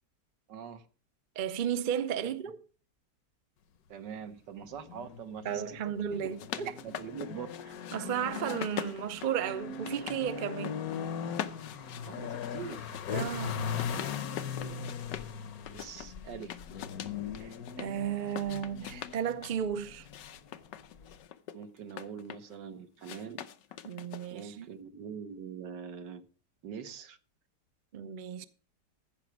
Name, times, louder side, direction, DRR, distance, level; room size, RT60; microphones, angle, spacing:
voice 1, 0.5-0.8 3.9-6.3 6.6-7.5 7.9-8.0 12.0-13.0 14.5-15.1 15.7-16.6 21.5-23.4 24.3-26.2 26.6-27.2, right 7 dB, 80° right, 1.7 m, -43 dB
voice 2, 1.4-2.6 5.4-6.7 7.9-10.8 13.1-13.8 17.4-20.1 23.8-24.7 27.9-28.4, right 9 dB, 55° right, 0.5 m, -34 dB
sound 1, 4.6-21.3, left 7 dB, 65° left, 1.3 m, -40 dB
sound 2, 6.1-8.0 8.3-10.2 10.5-11.0 11.3-15.3 15.7-17.9 18.3-19.6 20.0-22.6 23.0-24.5, left 10 dB, 85° left, 1.5 m, -43 dB
15.0 x 5.9 x 6.1 m
omnidirectional pair, 1.9 m